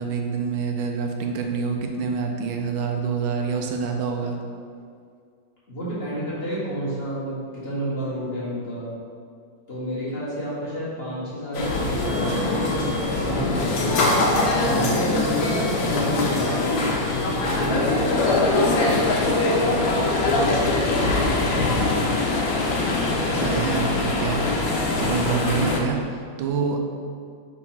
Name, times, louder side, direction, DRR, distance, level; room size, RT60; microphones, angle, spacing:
voice 1, 0.0-4.4 23.1-24.4 25.0-26.0 26.4-26.8, right 5 dB, 85° right, 2 dB, 1.5 m, -26 dB
voice 2, 5.7-8.9 9.7-12.8 13.1-14.2 14.6-17.0 17.4-21.5, equal, 30° left, -9 dB, 1.8 m, -31 dB
sound 1, 11.5-25.8, left 2 dB, 75° left, 1.6 m, -22 dB
4.6 x 4.3 x 5.8 m, 2.2 s
omnidirectional pair, 2.2 m